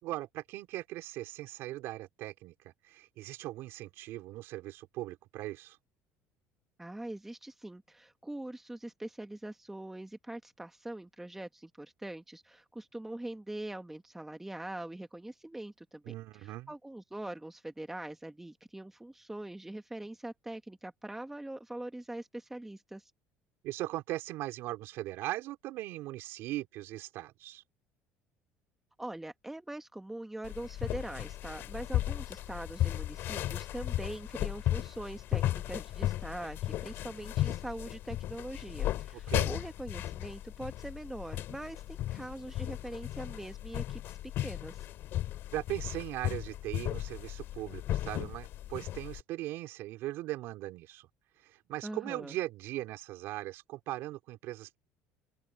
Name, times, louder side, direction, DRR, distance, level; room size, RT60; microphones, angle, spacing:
voice 1, 0.0-5.8 16.1-16.7 23.6-27.6 39.3-39.5 45.5-51.1 51.4-54.8, right 16 dB, 65° right, 4.0 m, -39 dB
voice 2, 6.8-23.1 29.0-44.9 51.8-52.4, right 1 dB, 5° right, 1.4 m, -43 dB
sound 1, 30.4-49.2, left 13 dB, 60° left, 2.8 m, -35 dB
open air
cardioid pair, 120°, 4 cm